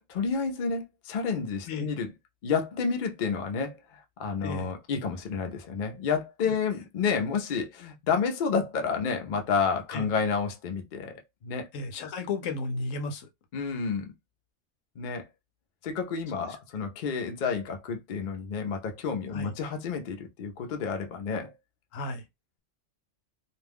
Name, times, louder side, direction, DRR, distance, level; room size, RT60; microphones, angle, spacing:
voice 1, 0.0-2.1 2.4-11.7 13.5-14.1 15.0-15.2 15.8-21.5, left 5 dB, 55° left, 0.6 m, -30 dB
voice 2, 4.4-4.7 6.4-6.5 9.9-10.1 11.7-13.3 16.3-16.5 19.3-19.5 21.9-22.2, left 3 dB, 80° left, 1.0 m, -34 dB
2.4 x 2.2 x 3.3 m
omnidirectional pair, 1.3 m